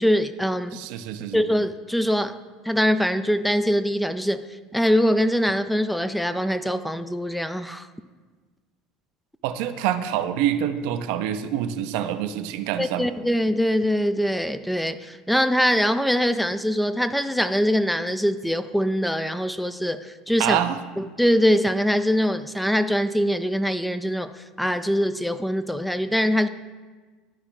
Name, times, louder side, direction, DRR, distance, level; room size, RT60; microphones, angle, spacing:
voice 1, 0.0-0.8 1.3-2.3 2.7-4.4 4.7-7.9 12.8-20.6 21.0-26.5, equal, ahead, 11 dB, 0.4 m, -23 dB
voice 2, 0.7-1.5 9.4-13.1 20.4-20.8, right 10 dB, 65° right, 9 dB, 0.5 m, -26 dB
12.0 x 4.8 x 3.3 m, 1.4 s
figure-of-eight pair, 70°, 0 cm